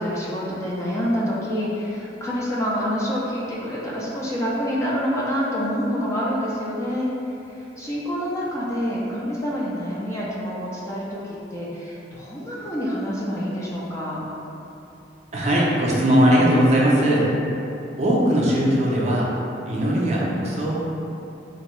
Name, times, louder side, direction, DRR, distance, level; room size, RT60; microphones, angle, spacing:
voice 1, 0.0-7.1 7.5-14.2, equal, 15° left, -6 dB, 0.4 m, -27 dB
voice 2, 15.3-17.3 18.0-19.3 19.7-20.8, equal, 40° right, -5 dB, 0.5 m, -19 dB
2.9 x 2.6 x 3.1 m, 2.9 s
head